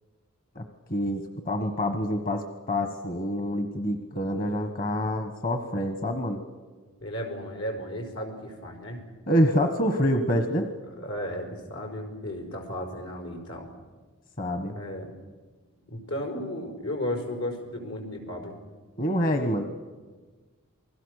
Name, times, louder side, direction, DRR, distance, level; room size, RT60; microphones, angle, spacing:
voice 1, 0.5-6.4 9.3-10.7 14.4-14.7 19.0-19.6, equal, 40° left, 7 dB, 1.3 m, -26 dB
voice 2, 7.0-9.0 10.9-13.7 14.7-15.1 15.9-18.6, equal, 85° left, 2 dB, 5.0 m, -34 dB
28.5 x 20.5 x 6.6 m, 1.4 s
head